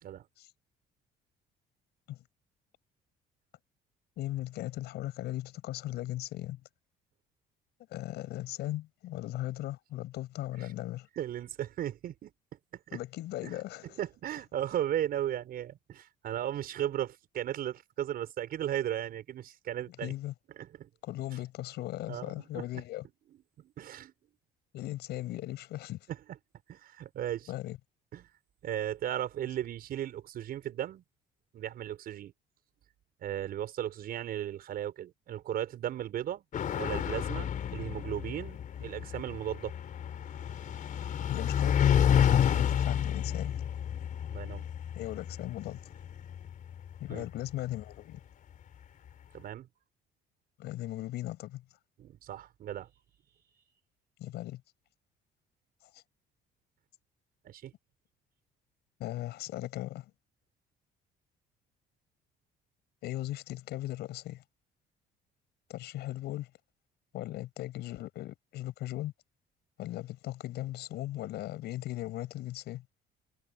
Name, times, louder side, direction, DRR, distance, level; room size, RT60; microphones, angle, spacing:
voice 1, 4.2-6.6 7.9-11.1 12.9-13.9 20.0-20.3 21.0-23.0 24.7-26.0 27.5-27.8 41.3-43.5 45.0-45.8 47.0-48.2 50.6-51.6 54.2-54.6 59.0-60.1 63.0-64.4 65.7-66.5 67.1-69.1 69.8-72.8, left 15 dB, 80° left, 7.2 m, -37 dB
voice 2, 11.2-12.3 12.9-13.0 13.4-13.6 14.0-20.1 20.6-20.9 22.1-22.3 23.6-24.1 26.1-26.2 26.7-27.5 28.1-28.3 28.6-31.0 31.5-32.3 33.2-36.4 36.8-39.7 44.3-44.7 47.1-47.3 49.3-49.7 52.0-52.9 57.4-57.7, right 11 dB, 60° right, 5.8 m, -36 dB
sound 1, 36.5-47.5, left 9 dB, 50° left, 3.9 m, -30 dB
cardioid pair, 110°, 17 cm